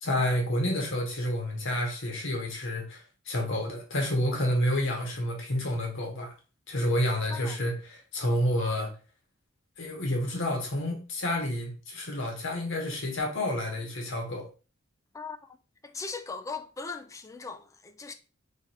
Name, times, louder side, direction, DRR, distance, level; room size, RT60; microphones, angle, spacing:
voice 1, 0.0-6.3 6.7-8.9 9.8-14.5, left 1 dB, 65° left, 1.1 m, -29 dB
voice 2, 7.3-7.6 15.1-15.4 15.8-18.1, left 4 dB, 15° left, 0.3 m, -39 dB
3.2 x 2.5 x 4.1 m
head